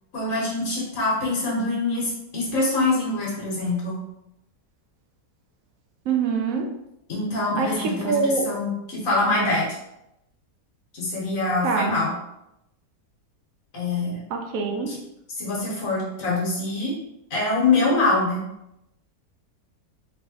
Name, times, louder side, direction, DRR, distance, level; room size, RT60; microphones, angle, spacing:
voice 1, 0.1-4.0 7.1-9.7 10.9-12.1 13.7-14.2 14.9-15.0 15.4-16.9 17.3-18.4, left 2 dB, 55° left, -4 dB, 1.5 m, -24 dB
voice 2, 6.1-6.7 7.5-8.5 11.6-12.0 14.3-14.9, right 4 dB, 70° right, 3 dB, 0.9 m, -24 dB
3.3 x 3.3 x 2.8 m, 0.86 s
omnidirectional pair, 1.7 m